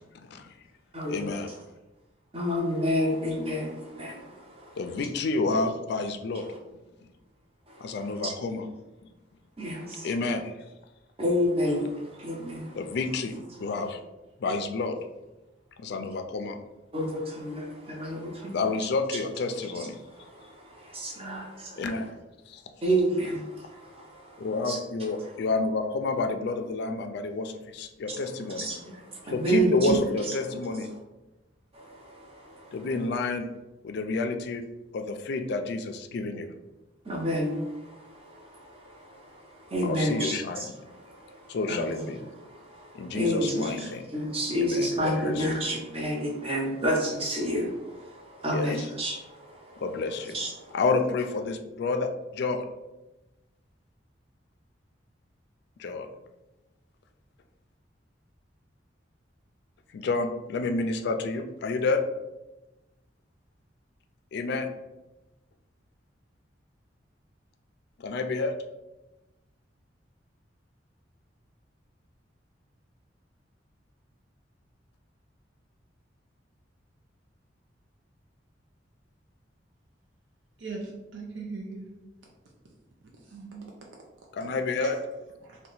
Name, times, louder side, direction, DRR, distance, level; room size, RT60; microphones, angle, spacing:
voice 1, 0.1-0.5 1.1-1.5 4.8-6.4 7.8-8.6 10.0-10.5 12.8-13.3 13.6-14.0 14.4-15.0 15.8-16.6 18.5-20.0 21.8-22.1 22.5-22.6 24.4-28.7 29.3-30.9 32.7-33.4 33.8-34.6 34.9-36.5 39.8-40.6 41.5-42.2 42.9-44.0 44.6-45.6 48.5-48.7 49.8-50.4 50.7-52.6 55.8-56.1 59.9-62.0 64.3-64.7 68.0-68.5 84.3-85.0, left 3 dB, 65° left, 7 dB, 0.3 m, -29 dB
voice 2, 0.9-1.6 2.3-5.0 6.3-6.6 7.7-8.3 9.6-10.1 11.2-13.0 13.5-13.7 16.9-18.7 19.7-22.1 22.8-24.8 25.2-25.4 28.1-30.0 30.2-30.4 30.7-30.9 31.7-32.9 37.0-42.1 42.4-49.8 50.2-50.8, equal, 30° right, -1 dB, 0.7 m, -31 dB
voice 3, 80.6-82.0 83.2-83.7 84.4-84.5 84.8-85.0 85.4-85.6, right 3 dB, 80° right, -1 dB, 0.5 m, -39 dB
2.8 x 2.2 x 3.9 m, 1.0 s
head